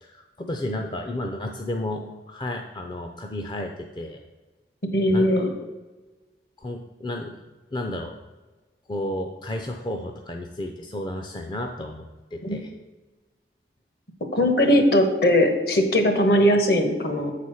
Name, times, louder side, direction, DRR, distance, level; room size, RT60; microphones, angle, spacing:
voice 1, 0.0-4.2 5.1-5.5 6.6-7.4 7.7-8.1 8.9-12.0 12.3-12.7, left 1 dB, 25° left, 3 dB, 0.4 m, -32 dB
voice 2, 4.9-5.5 12.4-12.6 14.3-17.3, equal, 60° left, 5 dB, 1.2 m, -19 dB
8.0 x 4.2 x 6.3 m, 1.2 s
head